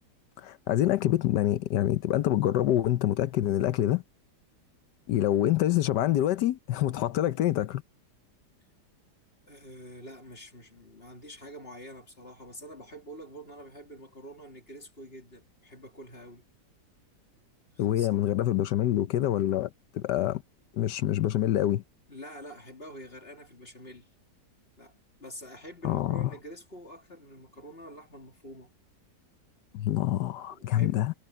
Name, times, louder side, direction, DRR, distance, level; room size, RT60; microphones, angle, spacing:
voice 1, 0.4-4.0 5.1-7.8 17.8-20.4 20.7-21.8 25.8-26.3 29.7-31.1, left 13 dB, 80° left, 1.3 m, -26 dB
voice 2, 9.5-16.4 17.8-18.3 22.1-24.1 24.8-28.7 30.5-31.0, equal, 35° left, 3.3 m, -46 dB
omnidirectional pair, 1.8 m